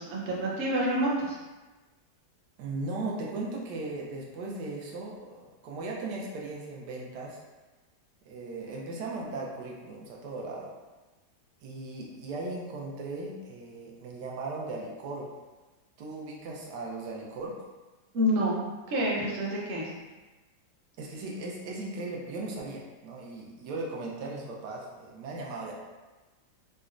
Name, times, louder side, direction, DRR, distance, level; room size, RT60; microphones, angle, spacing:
voice 1, 0.0-1.4 18.1-18.6 18.9-19.9, equal, 55° right, -5 dB, 0.8 m, -28 dB
voice 2, 2.6-7.4 8.2-10.7 11.6-15.3 16.0-17.5 21.0-25.7, right 2 dB, 85° right, -2 dB, 1.2 m, -37 dB
3.9 x 2.2 x 2.4 m, 1.2 s
omnidirectional pair, 1.8 m